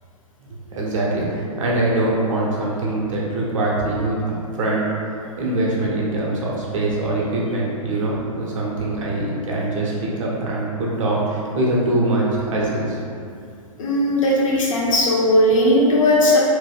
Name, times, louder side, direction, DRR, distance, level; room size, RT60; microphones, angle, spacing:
voice 1, 0.5-4.9 5.4-13.0, right 2 dB, 60° right, -4 dB, 0.8 m, -23 dB
voice 2, 13.8-16.4, left 1 dB, 65° left, -4 dB, 0.8 m, -17 dB
2.9 x 2.2 x 3.4 m, 2.4 s
figure-of-eight pair, 115°, 18 cm